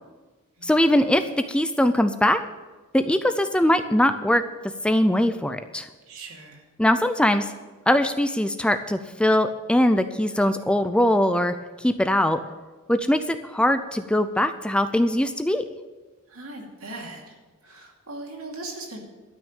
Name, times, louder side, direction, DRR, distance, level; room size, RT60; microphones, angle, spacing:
voice 1, 0.6-1.2 1.5-2.4 2.9-4.4 4.8-5.9 6.8-7.5 7.9-11.5 11.8-12.4 12.9-15.6, left 1 dB, 5° left, 9 dB, 0.4 m, -21 dB
voice 2, 6.1-6.6 16.3-17.4 17.6-19.0, right 2 dB, 75° right, 0 dB, 2.6 m, -39 dB
12.5 x 6.3 x 8.9 m, 1.2 s
head